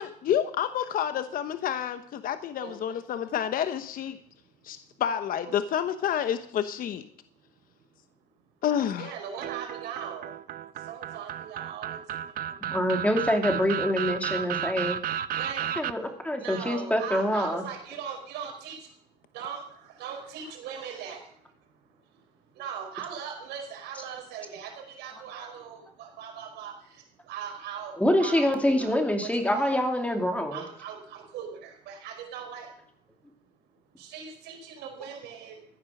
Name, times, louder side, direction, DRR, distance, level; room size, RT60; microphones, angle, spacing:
voice 1, 0.0-4.2 4.6-7.0 8.6-9.1, left 9 dB, 55° left, 10 dB, 0.9 m, -29 dB
voice 2, 8.9-10.4 10.7-12.5 15.3-15.7 16.4-18.9 19.3-21.5 22.1-22.2 22.5-29.9 30.5-32.7 34.0-35.6, right 7 dB, 85° right, 1 dB, 4.6 m, -40 dB
sound 1, 9.4-15.9, right 10 dB, 60° right, 0.7 m, -33 dB
voice 3, 12.7-15.0 15.8-17.6 28.0-30.6, left 1 dB, 10° left, 4 dB, 2.6 m, -25 dB
15.0 x 9.8 x 6.5 m, 0.66 s
cardioid pair, 110°, 17 cm